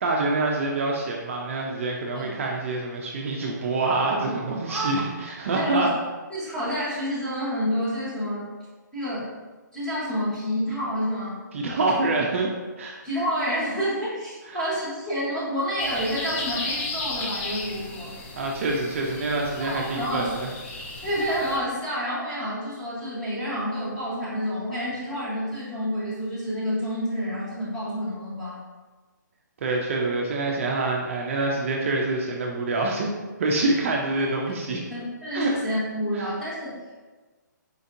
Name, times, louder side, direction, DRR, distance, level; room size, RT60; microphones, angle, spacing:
voice 1, 0.0-5.9 11.5-12.5 12.8-13.0 18.4-20.5 29.6-33.1 33.4-34.8 35.3-35.5 36.1-36.3, right 2 dB, 40° right, -1 dB, 0.4 m, -26 dB
voice 2, 4.7-5.0 5.5-5.9 6.3-8.5 8.9-9.3 9.7-11.4 13.0-18.2 19.6-20.3 21.0-28.6 34.9-37.0, equal, 5° left, -10 dB, 0.9 m, -29 dB
sound 1, 15.8-21.6, left 3 dB, 40° left, 0.5 m, -34 dB
4.4 x 2.6 x 2.5 m, 1.3 s
hypercardioid pair, 165°, 10 cm